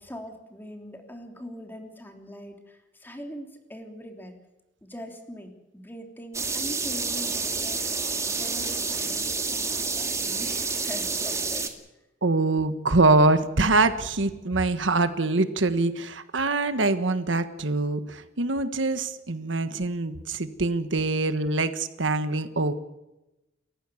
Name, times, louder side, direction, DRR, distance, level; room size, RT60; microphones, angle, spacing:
voice 1, 0.0-4.4 4.8-11.7, equal, 10° left, 4 dB, 3.3 m, -42 dB
sound 1, 6.3-11.7, right 4 dB, 15° right, 2.1 m, -29 dB
voice 2, 12.2-22.7, right 2 dB, 85° right, 11 dB, 1.4 m, -24 dB
29.5 x 15.0 x 7.1 m, 0.98 s
head